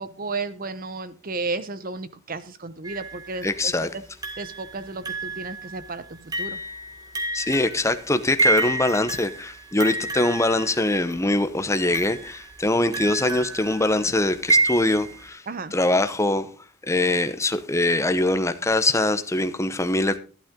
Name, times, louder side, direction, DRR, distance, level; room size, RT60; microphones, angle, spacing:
voice 1, 0.0-3.7 4.4-6.6 15.5-15.7, right 3 dB, 45° right, 0.9 m, -33 dB
sound 1, 2.8-3.4 4.2-11.1 11.9-15.3, right 3 dB, 20° right, 1.8 m, -29 dB
voice 2, 3.4-3.9 7.3-15.4 15.7-16.5 16.9-20.2, left 2 dB, 15° left, 0.8 m, -23 dB
12.0 x 11.5 x 3.7 m
head